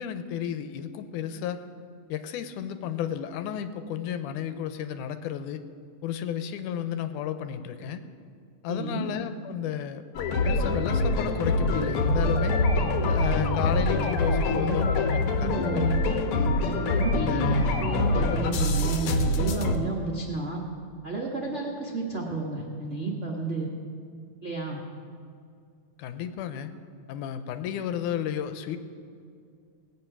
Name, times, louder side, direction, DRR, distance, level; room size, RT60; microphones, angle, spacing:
voice 1, 0.0-1.6 2.1-5.6 6.0-8.0 8.6-10.0 10.4-12.6 13.1-16.0 16.3-16.5 17.1-17.7 26.0-26.7 27.1-28.8, left 9 dB, 85° left, 10 dB, 2.2 m, -32 dB
voice 2, 8.7-9.1 14.5-14.9 15.4-16.0 16.9-20.6 21.0-23.7 24.4-24.8, right 3 dB, 80° right, -2 dB, 0.6 m, -31 dB
sound 1, 10.1-19.7, left 2 dB, 70° left, 1.4 m, -25 dB
18.5 x 8.5 x 6.0 m, 2.3 s
omnidirectional pair, 3.6 m